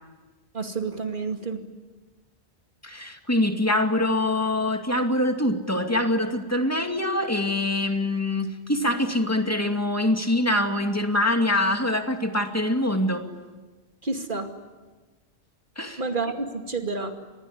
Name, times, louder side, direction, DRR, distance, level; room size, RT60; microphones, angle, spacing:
voice 1, 0.5-1.6 14.0-14.5 16.0-17.2, right 4 dB, 55° right, 5 dB, 2.6 m, -29 dB
voice 2, 2.8-13.2 15.8-16.0, left 1 dB, 15° left, 5 dB, 2.3 m, -24 dB
28.0 x 21.0 x 9.7 m, 1.2 s
omnidirectional pair, 1.0 m